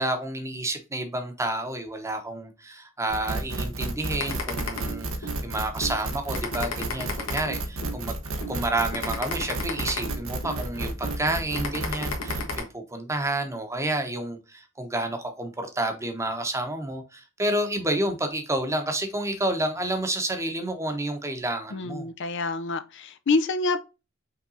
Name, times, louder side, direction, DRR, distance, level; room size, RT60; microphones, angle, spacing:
voice 1, 0.0-8.1 8.5-22.1, right 1 dB, 15° right, 0.9 m, -30 dB
sound 1, 3.1-12.6, right 2 dB, 85° right, 1.1 m, -32 dB
sound 2, 4.2-5.4 5.8-6.0 6.3-8.0 8.4-8.6 8.9-10.6 11.0-11.2 11.5-12.6, left 4 dB, 85° left, 1.4 m, -32 dB
voice 2, 21.7-23.8, left 3 dB, 60° left, 0.5 m, -27 dB
5.6 x 3.6 x 2.6 m
head